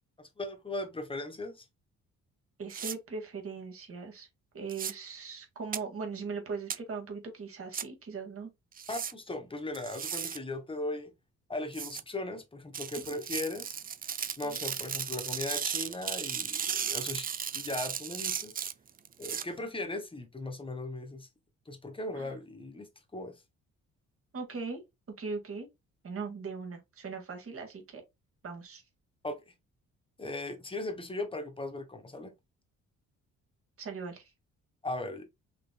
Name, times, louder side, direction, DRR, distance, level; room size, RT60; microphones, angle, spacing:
voice 1, 0.2-1.6 8.9-11.1 11.5-13.7 14.4-17.3 17.5-18.5 19.2-21.3 21.7-22.9 23.1-23.3 29.2-29.3 30.2-32.3 34.8-35.2, left 2 dB, 15° left, 1.4 m, -38 dB
voice 2, 2.6-4.3 4.5-8.5 13.1-13.2 14.4-14.6 22.2-22.3 24.3-24.8 25.2-25.7 26.0-28.0 28.4-28.8 33.8-34.3, right 4 dB, 50° right, 2.0 m, -39 dB
sound 1, 2.7-2.9 4.7-4.9 5.7-5.8 6.7-6.8 7.7-7.8 8.8-9.1 9.7-10.4 11.7-12.0 12.7-19.4, right 7 dB, 30° right, 0.4 m, -35 dB
5.7 x 3.4 x 2.3 m
cardioid pair, 90°, 30 cm